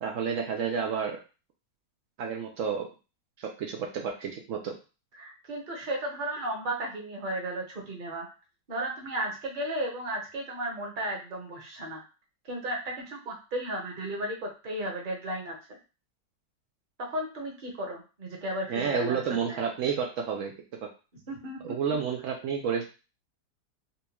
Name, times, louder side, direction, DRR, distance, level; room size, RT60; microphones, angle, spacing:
voice 1, 0.0-1.2 2.2-2.9 3.4-4.7 18.7-20.5 21.6-22.9, right 6 dB, 85° right, 1 dB, 0.6 m, -30 dB
voice 2, 5.1-8.2 8.7-12.0 12.5-15.6 17.0-19.6 21.3-21.6, right 1 dB, 40° right, 0 dB, 0.7 m, -34 dB
4.2 x 2.3 x 2.9 m, 0.32 s
omnidirectional pair, 1.9 m